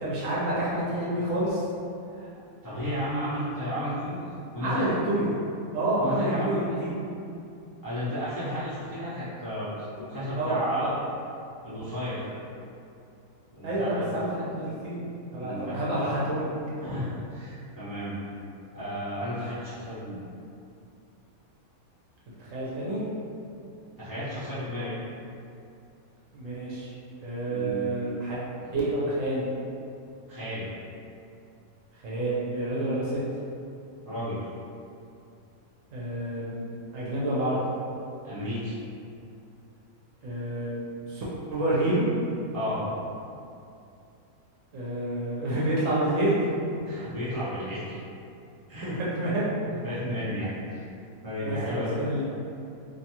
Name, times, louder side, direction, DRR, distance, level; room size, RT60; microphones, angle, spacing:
voice 1, 0.0-1.6 4.6-5.4 5.7-6.9 10.4-10.9 13.6-15.0 15.3-16.5 22.5-23.0 26.3-26.9 27.2-28.4 28.7-29.4 32.0-33.2 35.9-36.6 36.9-37.6 40.2-41.2 41.5-42.1 44.7-46.4 48.8-49.5 51.4-52.2, right 1 dB, 65° right, -7 dB, 0.9 m, -28 dB
voice 2, 2.6-4.8 6.0-6.8 7.8-9.7 10.0-10.9 11.6-12.2 13.5-14.1 15.4-16.0 16.8-18.2 18.7-20.2 24.0-24.9 27.5-27.9 28.6-28.8 30.3-30.6 34.0-34.5 38.2-38.8 42.5-42.9 46.8-47.9 48.7-48.9 49.7-50.8 51.2-52.2, equal, 25° left, -14 dB, 0.5 m, -33 dB
2.6 x 2.3 x 2.8 m, 2.5 s
omnidirectional pair, 1.6 m